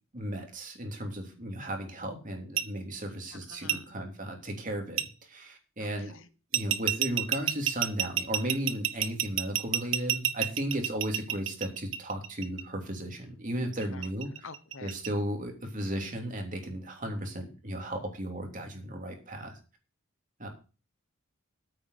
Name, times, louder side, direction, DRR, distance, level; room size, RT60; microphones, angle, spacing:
voice 1, 0.1-6.1 6.5-14.5 14.8-19.6 20.4-20.5, right 1 dB, 40° right, 3 dB, 3.0 m, -35 dB
sound 1, 2.6-2.7 3.7-3.8 5.0-5.1 6.5-12.6 13.8-15.1, right 11 dB, 70° right, 0.8 m, -29 dB
voice 2, 3.5-3.8 5.8-6.3 11.1-11.2 13.9-14.1 14.4-14.9 17.1-17.2, left 4 dB, 65° left, 14 dB, 1.0 m, -47 dB
9.0 x 5.5 x 8.0 m, 0.34 s
head